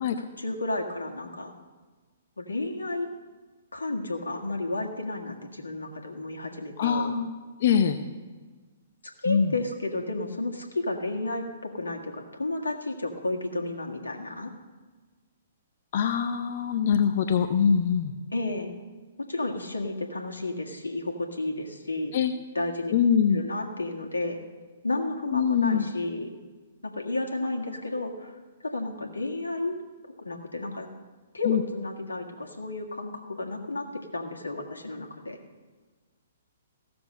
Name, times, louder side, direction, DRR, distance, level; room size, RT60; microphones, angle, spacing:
voice 1, 0.2-1.5 2.4-3.1 3.7-7.1 9.0-14.5 18.3-18.7 19.3-22.1 22.5-22.9 23.3-24.4 24.8-26.3 26.8-29.7 30.2-30.9 31.3-35.4, left 2 dB, 85° left, 2 dB, 1.6 m, -32 dB
voice 2, 6.8-7.3 7.6-8.0 9.3-9.5 15.9-18.1 22.1-22.3 22.9-23.4 25.3-25.9 31.4-31.6, left 7 dB, 50° left, 8 dB, 0.7 m, -23 dB
15.5 x 7.0 x 6.5 m, 1.4 s
figure-of-eight pair, 120°, 0 cm